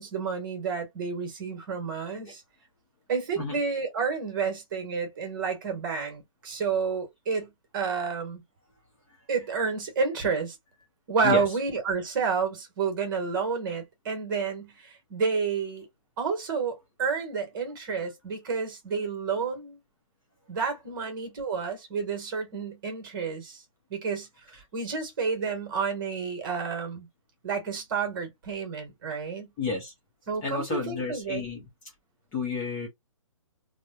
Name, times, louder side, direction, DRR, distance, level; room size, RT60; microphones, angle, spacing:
voice 1, 0.0-2.4 3.1-8.4 9.3-10.6 11.1-15.9 16.2-19.8 20.5-23.6 23.9-27.1 27.4-29.5 30.3-31.5, right 5 dB, 40° right, 1.4 m, -30 dB
voice 2, 29.6-29.9 30.4-31.6 32.3-32.9, left 4 dB, 15° left, 0.8 m, -30 dB
3.1 x 2.3 x 2.6 m
hypercardioid pair, 165°, 17 cm